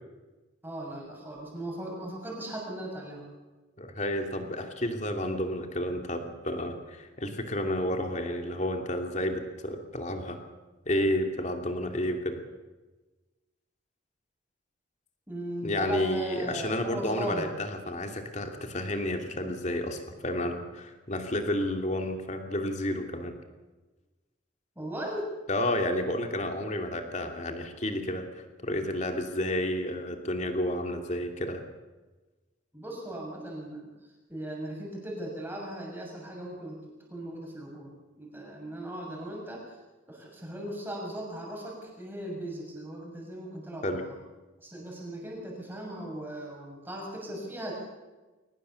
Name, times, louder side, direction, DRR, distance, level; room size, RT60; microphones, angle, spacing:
voice 1, 0.6-3.3 15.3-17.5 24.7-25.3 32.7-33.9 34.3-39.8 40.1-44.1 44.6-47.7, right 1 dB, 10° right, -2 dB, 6.6 m, -38 dB
voice 2, 3.8-10.4 10.9-12.4 15.6-23.3 25.5-28.3 28.6-31.6 43.8-44.0, left 1 dB, 35° left, 4 dB, 2.8 m, -31 dB
22.5 x 19.5 x 7.1 m, 1.2 s
head